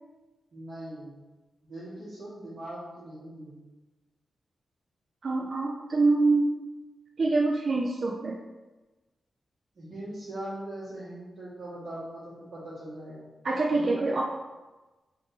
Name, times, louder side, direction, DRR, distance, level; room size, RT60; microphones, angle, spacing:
voice 1, 0.5-1.2 1.6-3.6 9.7-13.2 13.7-14.0, right 1 dB, 65° right, -12 dB, 1.4 m, -40 dB
voice 2, 5.2-6.5 7.2-8.4 13.4-14.2, right 3 dB, 50° right, 0 dB, 0.3 m, -25 dB
3.6 x 2.5 x 4.0 m, 1.2 s
wide cardioid pair, 125°, 0 cm